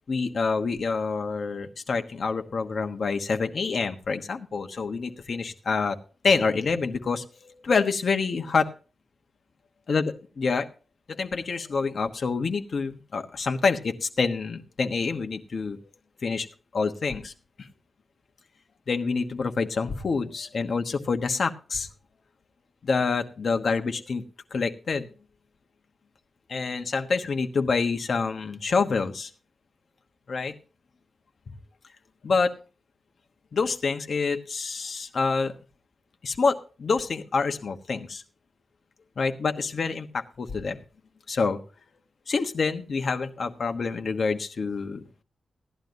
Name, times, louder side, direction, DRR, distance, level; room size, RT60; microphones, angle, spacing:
voice 1, 0.1-6.0 6.2-8.7 9.9-10.1 10.4-10.7 11.1-15.8 16.2-16.5 16.7-17.3 17.6-17.7 18.9-21.9 22.8-24.2 24.5-25.1 26.5-29.3 30.3-30.5 32.2-32.5 33.5-35.5 36.2-38.2 39.2-40.8 41.3-41.6 42.3-45.0, left 4 dB, 55° left, 6 dB, 1.2 m, -27 dB
16.5 x 11.5 x 2.6 m, 0.35 s
wide cardioid pair, 135°, 0 cm